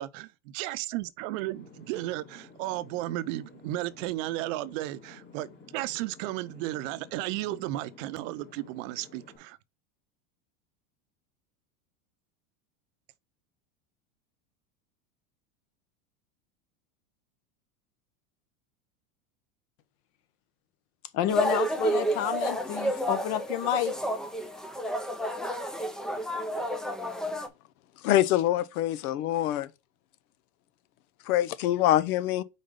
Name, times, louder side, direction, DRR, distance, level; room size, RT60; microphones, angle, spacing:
voice 1, 0.0-5.5 5.7-9.6, right 16 dB, 60° right, 0.7 m, -34 dB
sound 1, 1.4-9.4, left 4 dB, 25° left, 3.0 m, -53 dB
voice 2, 21.1-23.9, left 10 dB, 60° left, 1.2 m, -29 dB
sound 2, 21.3-27.5, right 1 dB, ahead, 0.3 m, -30 dB
voice 3, 28.0-29.7 31.2-32.4, left 13 dB, 85° left, 0.8 m, -25 dB
5.1 x 4.2 x 5.2 m
supercardioid pair, 135°, 43 cm